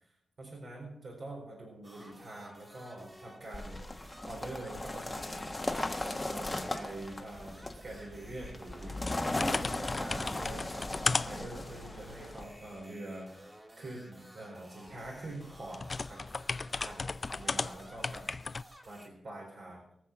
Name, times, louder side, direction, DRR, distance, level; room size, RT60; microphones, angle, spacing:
voice 1, 0.0-5.7 6.0-13.3 13.8-18.2 18.9-19.8, right 1 dB, 55° right, -2 dB, 4.4 m, -45 dB
sound 1, 1.8-19.1, equal, 15° right, 2.5 m, -55 dB
sound 2, 3.5-12.4, left 2 dB, 15° left, 1.2 m, -37 dB
sound 3, 9.1-12.8 14.9-18.6, left 3 dB, 30° left, 0.4 m, -36 dB
22.5 x 7.6 x 6.0 m, 0.74 s
wide cardioid pair, 155°, 0 cm